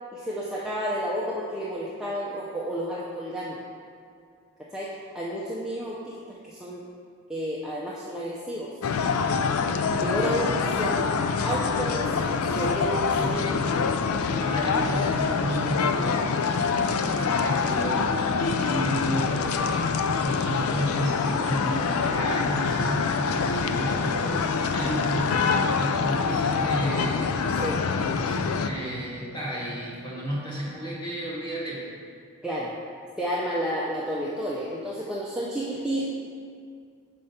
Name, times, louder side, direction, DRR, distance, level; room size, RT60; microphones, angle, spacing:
voice 1, 0.1-3.6 4.6-6.8 7.3-8.7 9.9-11.0 11.4-13.6 27.6-27.9 32.4-32.7 33.2-36.1, equal, 5° right, -6 dB, 0.5 m, -31 dB
sound 1, 8.8-28.7, left 5 dB, 75° left, 0.4 m, -25 dB
voice 2, 13.2-13.6 14.4-27.3 27.9-31.8, equal, 20° left, -7 dB, 1.5 m, -32 dB
5.4 x 5.0 x 5.7 m, 2.3 s
head